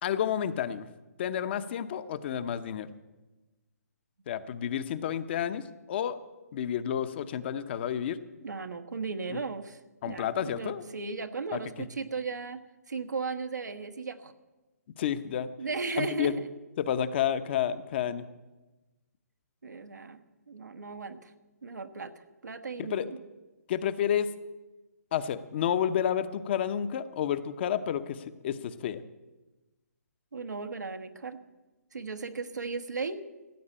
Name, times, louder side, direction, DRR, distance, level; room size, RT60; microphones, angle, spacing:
voice 1, 0.0-0.9 1.2-2.9 4.3-6.2 6.5-8.2 10.0-10.8 11.5-11.6 15.0-15.5 16.0-16.4 16.8-18.2 22.8-23.1 23.7-24.3 25.1-29.0, left 9 dB, 40° left, 12 dB, 0.7 m, -30 dB
voice 2, 8.4-9.8 10.0-12.6 12.9-14.3 15.6-16.5 19.6-20.2 20.5-21.3 21.6-23.2 30.3-31.4 31.9-33.2, right 4 dB, 90° right, 8 dB, 1.3 m, -36 dB
14.5 x 8.0 x 8.7 m, 1.1 s
hypercardioid pair, 145°, 9 cm